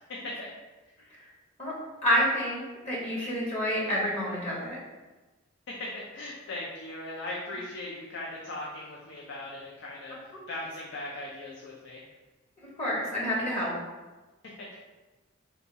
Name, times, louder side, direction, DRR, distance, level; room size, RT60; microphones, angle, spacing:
voice 1, 0.1-0.5 5.7-10.2 10.5-12.0 14.6-14.8, left 2 dB, 60° left, -4 dB, 0.5 m, -38 dB
voice 2, 2.0-4.8 12.6-13.7, equal, 35° left, -5 dB, 0.8 m, -28 dB
4.0 x 2.3 x 2.7 m, 1.2 s
head